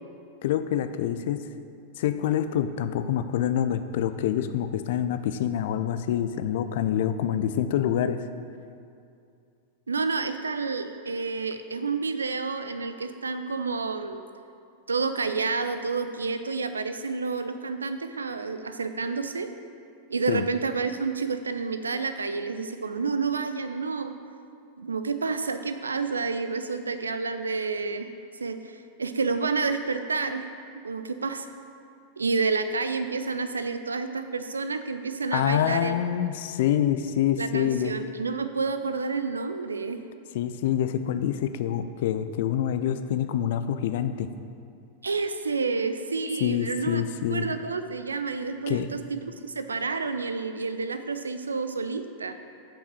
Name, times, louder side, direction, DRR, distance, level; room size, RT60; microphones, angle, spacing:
voice 1, 0.4-1.4 2.0-8.2 20.3-20.5 35.3-37.9 40.3-44.3 46.4-47.5 48.7-48.9, left 10 dB, 55° left, 10 dB, 0.4 m, -26 dB
voice 2, 9.9-14.2 14.9-19.5 20.1-24.2 24.8-28.1 28.4-30.5 30.8-31.5 32.2-35.9 37.4-40.0 45.0-47.0 47.3-52.3, right 4 dB, 75° right, 9 dB, 0.5 m, -29 dB
7.2 x 5.5 x 6.2 m, 2.5 s
figure-of-eight pair, 90°, 0 cm